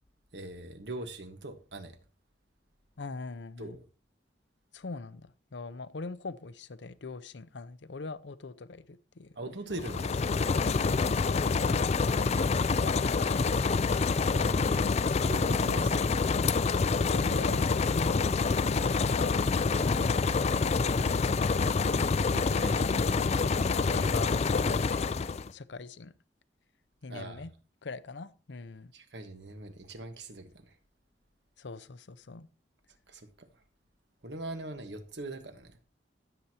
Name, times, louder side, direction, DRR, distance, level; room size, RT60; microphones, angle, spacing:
voice 1, 0.3-1.9 3.6-3.8 9.3-10.2 14.4-14.9 15.2-16.1 22.3-23.0 27.1-27.5 28.9-30.5 33.1-33.3 34.2-35.8, right 2 dB, 70° right, 1.4 m, -41 dB
voice 2, 3.0-3.8 4.7-9.3 9.9-10.0 10.6-12.4 12.8-14.5 17.1-20.3 20.6-21.7 23.7-25.2 25.5-26.1 27.0-27.5 27.8-28.9 31.6-32.5, left 3 dB, 80° left, 0.7 m, -42 dB
sound 1, 9.7-25.5, left 4 dB, 35° left, 0.4 m, -27 dB
15.5 x 8.0 x 2.9 m
head